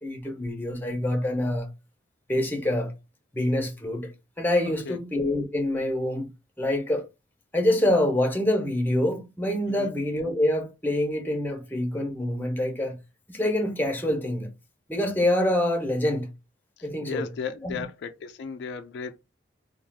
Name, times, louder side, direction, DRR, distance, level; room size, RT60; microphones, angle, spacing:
voice 1, 0.0-1.7 2.3-2.9 3.3-4.1 4.4-6.3 6.6-7.1 7.5-13.0 13.3-14.5 14.9-16.3 16.8-17.3 17.6-17.8, left 1 dB, 10° left, 0.6 m, -26 dB
voice 2, 4.6-5.0 9.7-9.9 16.8-19.2, left 5 dB, 65° left, 0.3 m, -36 dB
2.4 x 2.2 x 3.3 m
head